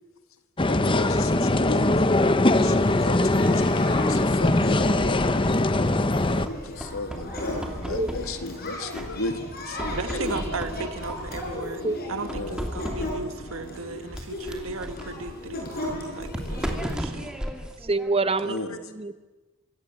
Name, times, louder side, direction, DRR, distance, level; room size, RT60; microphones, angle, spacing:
sound 1, 0.6-6.5, left 2 dB, 25° left, 0.8 m, -21 dB
voice 1, 0.7-5.5 6.2-10.1 12.3-12.7 18.4-18.9, left 2 dB, 75° left, 8 dB, 1.8 m, -35 dB
sound 2, 2.6-16.9, left 1 dB, 45° left, 6.2 m, -36 dB
sound 3, 6.5-8.6 8.9-9.5 9.8-11.7 12.3-13.4 14.1-18.6, equal, 5° right, 2.5 m, -36 dB
voice 2, 7.5-8.1 11.8-11.9 16.3-16.4 17.8-18.6 19.0-19.1, right 3 dB, 25° right, 12 dB, 1.0 m, -26 dB
voice 3, 9.9-17.3, right 3 dB, 75° right, 8 dB, 1.4 m, -36 dB
25.5 x 25.0 x 7.6 m, 1.2 s
head